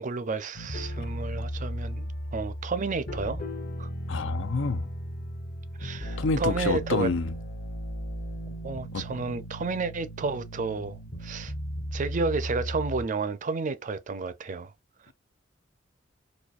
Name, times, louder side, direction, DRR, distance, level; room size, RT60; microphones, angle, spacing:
voice 1, 0.0-3.4 3.8-3.9 5.8-7.1 8.6-11.5 11.9-14.7 15.1-15.2, right 4 dB, 45° right, 0.5 m, -31 dB
sound 1, 0.5-13.1, equal, 50° left, 0.9 m, -36 dB
voice 2, 4.1-4.9 6.2-7.3 8.9-9.0, left 4 dB, 80° left, 0.6 m, -28 dB
4.1 x 2.6 x 2.4 m
head